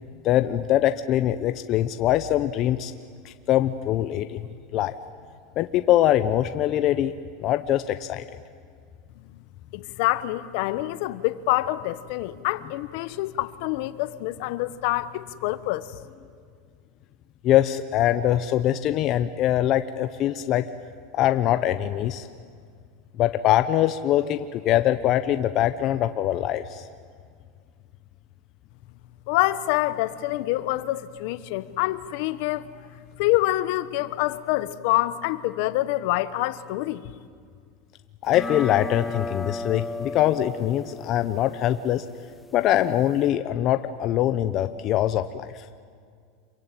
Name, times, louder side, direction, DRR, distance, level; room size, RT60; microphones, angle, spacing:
voice 1, 0.2-2.9 3.2-4.4 4.7-4.9 5.6-7.1 7.4-8.2 17.4-20.7 21.1-22.3 23.2-26.9 38.2-42.1 42.5-45.6, left 12 dB, 40° left, 0.9 m, -23 dB
voice 2, 9.7-15.9 29.3-32.7 33.2-37.0, left 17 dB, 65° left, 1.2 m, -26 dB
sound 1, 38.3-43.3, left 3 dB, 10° left, 0.9 m, -36 dB
27.0 x 23.0 x 9.2 m
supercardioid pair, 145°, 0 cm